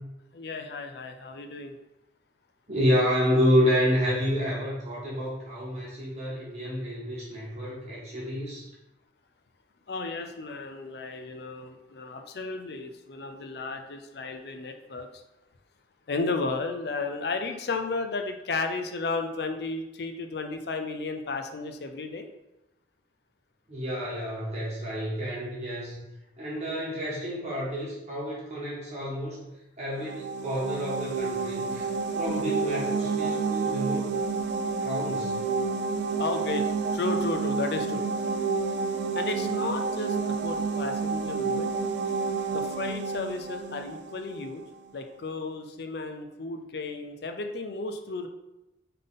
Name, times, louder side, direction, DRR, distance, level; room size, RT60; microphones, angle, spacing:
voice 1, 0.3-1.7 9.9-15.1 16.1-22.3 36.2-36.6 36.9-38.0 39.1-40.2 40.4-41.7 42.5-44.6 44.9-48.3, left 3 dB, 60° left, 6 dB, 0.5 m, -33 dB
voice 2, 2.7-8.6 23.7-26.0 26.4-29.4 29.8-31.9 32.1-34.1 34.8-35.4, equal, 35° right, -6 dB, 1.6 m, -29 dB
sound 1, 30.0-44.7, right 4 dB, 70° right, 0.3 m, -29 dB
3.8 x 3.6 x 3.7 m, 0.94 s
head